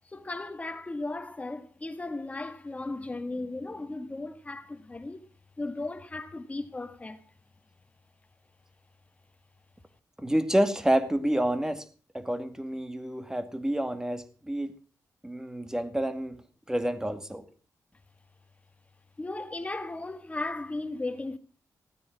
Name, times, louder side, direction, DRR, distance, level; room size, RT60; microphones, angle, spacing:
voice 1, 0.1-5.3 5.6-7.2 19.2-21.4, left 2 dB, 20° left, 1.8 m, -36 dB
voice 2, 10.2-11.9 12.1-14.7 15.2-16.4 16.7-17.4, right 1 dB, 10° right, 2.1 m, -28 dB
16.0 x 9.4 x 6.1 m
cardioid pair, 85°, 6 cm